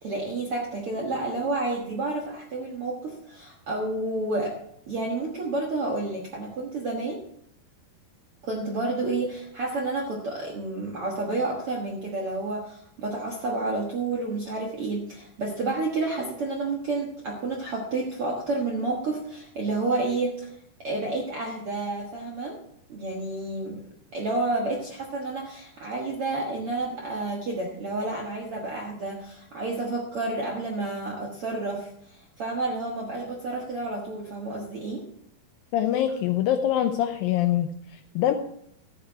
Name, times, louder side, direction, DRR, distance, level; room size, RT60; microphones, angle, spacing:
voice 1, 0.0-4.6 4.9-7.2 8.4-22.6 22.9-23.8 24.1-35.0, right 2 dB, 65° right, -1 dB, 1.4 m, -30 dB
voice 2, 35.7-38.3, left 11 dB, 80° left, 7 dB, 2.1 m, -24 dB
12.5 x 8.9 x 4.6 m, 0.72 s
omnidirectional pair, 4.7 m